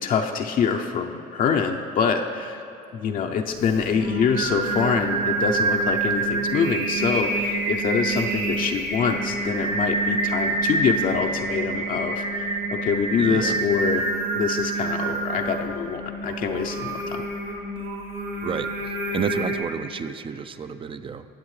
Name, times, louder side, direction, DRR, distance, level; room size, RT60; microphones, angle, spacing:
voice 1, 0.0-2.6 2.9-14.0 14.3-17.2, left 6 dB, 50° left, 3 dB, 0.6 m, -25 dB
Singing, 3.6-19.6, right 3 dB, 60° right, 2.0 m, -27 dB
voice 2, 13.2-13.6 18.4-18.7 19.1-21.2, right 6 dB, 30° right, 12 dB, 0.5 m, -30 dB
19.5 x 7.4 x 3.2 m, 2.6 s
supercardioid pair, 90°, 17 cm